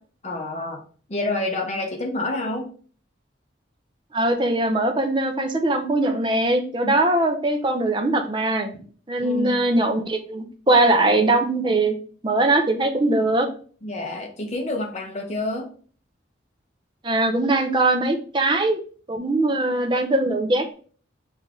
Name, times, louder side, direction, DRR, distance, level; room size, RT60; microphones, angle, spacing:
voice 1, 0.2-0.8 1.1-2.7 6.8-6.9 8.7-8.8 9.2-9.6 13.8-15.7, left 2 dB, 35° left, 3 dB, 0.7 m, -28 dB
voice 2, 4.1-8.7 9.1-11.9 12.2-13.5 17.0-18.8 19.1-20.7, right 2 dB, 25° right, 5 dB, 0.5 m, -21 dB
5.2 x 2.5 x 3.1 m, 0.43 s
head